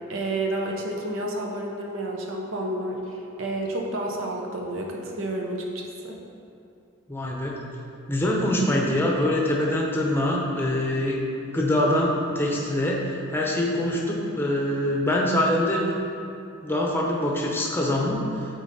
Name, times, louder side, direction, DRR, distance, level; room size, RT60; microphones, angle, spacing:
voice 1, 0.1-6.2, right 1 dB, 65° right, 0 dB, 0.9 m, -30 dB
voice 2, 7.1-7.6 8.1-11.3 11.5-15.8 16.6-18.2, left 1 dB, 10° left, -2 dB, 0.8 m, -24 dB
8.7 x 4.0 x 4.2 m, 2.6 s
head